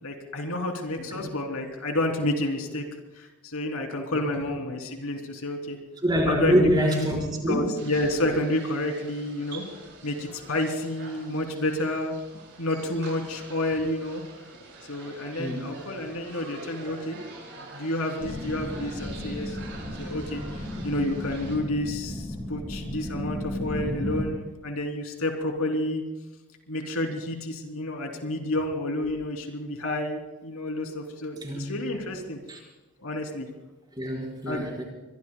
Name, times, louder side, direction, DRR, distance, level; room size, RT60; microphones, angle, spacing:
voice 1, 0.0-2.8 3.2-5.8 6.3-6.7 7.5-9.6 10.0-12.2 12.6-14.2 14.9-17.2 17.7-19.6 19.8-26.0 26.7-32.4 33.0-33.5 34.4-34.6, left 1 dB, 75° left, 3 dB, 3.2 m, -30 dB
voice 2, 6.0-7.7 15.4-15.6 31.4-31.7 32.5-32.6 34.0-34.8, equal, 20° right, -2 dB, 5.0 m, -25 dB
sound 1, 7.8-21.6, right 2 dB, 55° right, 7.3 m, -45 dB
sound 2, 18.2-24.2, left 1 dB, ahead, 4.2 m, -34 dB
25.0 x 23.0 x 2.3 m, 1.1 s
head